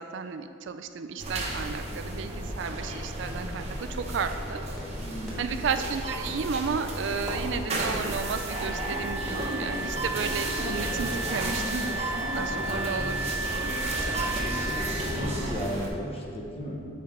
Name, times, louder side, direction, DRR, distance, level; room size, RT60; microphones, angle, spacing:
voice 1, 0.0-4.6 5.4-11.8 12.3-14.4, right 5 dB, 60° right, 9 dB, 0.4 m, -33 dB
sound 1, 1.2-15.9, right 1 dB, 30° right, 0.8 m, -32 dB
sound 2, 2.3-2.5 2.7-3.0 3.3-3.5 3.8-10.9 11.3-12.1 12.3-12.4 12.8-12.9, equal, ahead, 1.5 m, -44 dB
voice 2, 5.0-5.4 15.1-16.9, equal, 30° left, -1 dB, 0.9 m, -35 dB
Wind instrument woodwind instrument, 8.1-15.2, right 3 dB, 55° left, 1.2 m, -35 dB
7.0 x 4.3 x 5.0 m, 2.7 s
head